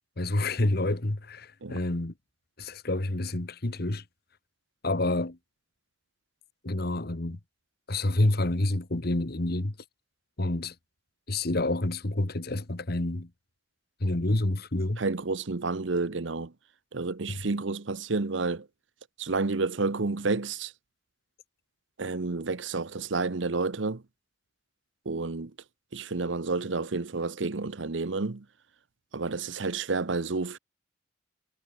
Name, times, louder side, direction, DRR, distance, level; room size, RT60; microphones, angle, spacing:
voice 1, 0.2-2.1 2.6-4.0 4.8-5.4 6.6-7.4 7.9-9.7 10.4-10.7 11.3-13.3 14.0-15.0 17.3-17.4, left 2 dB, 55° left, 1.5 m, -28 dB
voice 2, 15.0-16.5 16.9-18.7 19.2-20.7 22.0-24.0 25.0-25.5 25.9-28.4 29.1-30.6, right 3 dB, 75° right, 0.9 m, -30 dB
head